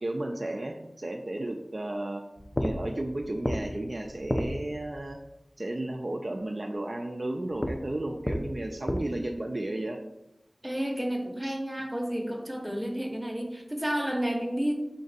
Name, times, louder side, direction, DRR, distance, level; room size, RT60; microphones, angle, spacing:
voice 1, 0.0-2.2 2.6-5.2 5.6-10.0 11.4-11.6, right 1 dB, 50° right, 2 dB, 0.4 m, -33 dB
sound 1, 2.4-5.2 7.5-9.0, equal, 20° left, 0.4 m, -33 dB
voice 2, 10.6-14.7, equal, 5° right, 2 dB, 0.8 m, -31 dB
5.1 x 2.5 x 4.0 m, 0.90 s
wide cardioid pair, 55°, 0 cm